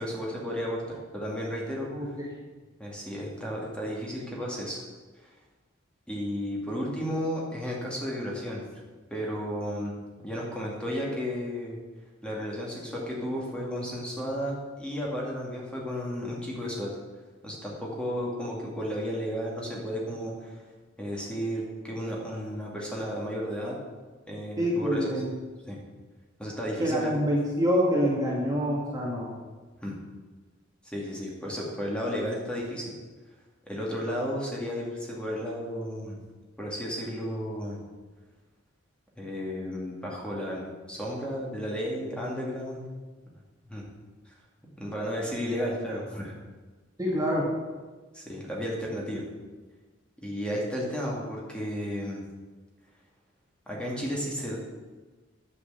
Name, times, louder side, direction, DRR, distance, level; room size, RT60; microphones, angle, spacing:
voice 1, 0.0-2.2 2.8-4.8 5.2-5.3 6.1-8.6 9.1-10.0 10.2-11.8 12.2-16.9 17.4-20.6 21.0-23.7 24.3-25.1 25.7-25.8 26.4-27.1 29.8-29.9 30.8-32.9 33.7-36.2 36.6-37.8 39.2-42.8 43.7-43.9 44.3-44.4 44.7-46.3 48.1-49.2 50.2-52.2 53.7-54.6, equal, 5° left, -3 dB, 2.4 m, -33 dB
voice 2, 1.9-2.3 24.6-25.3 26.8-29.3 47.0-47.5, equal, 20° right, -4 dB, 1.9 m, -26 dB
10.0 x 6.5 x 8.1 m, 1.3 s
head